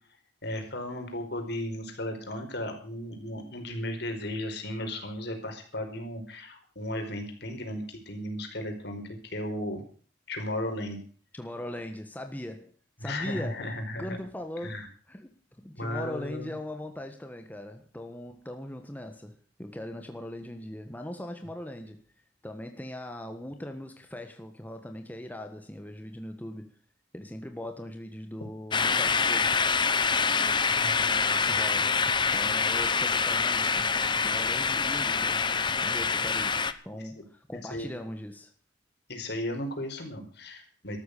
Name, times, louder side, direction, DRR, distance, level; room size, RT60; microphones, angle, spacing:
voice 1, 0.4-9.8 10.3-11.0 13.0-14.2 14.6-14.9 15.7-16.5 30.7-31.0 36.9-37.0 37.7-38.0 39.1-41.0, left 1 dB, 65° left, 5 dB, 4.9 m, -35 dB
voice 2, 11.3-12.7 13.0-13.7 14.0-14.8 15.1-22.0 22.4-26.7 27.1-29.6 31.0-35.4 35.8-38.5, left 1 dB, 10° left, 5 dB, 1.4 m, -40 dB
sound 1, 28.7-36.7, left 5 dB, 25° left, 0.9 m, -26 dB
13.5 x 13.0 x 6.7 m, 0.44 s
head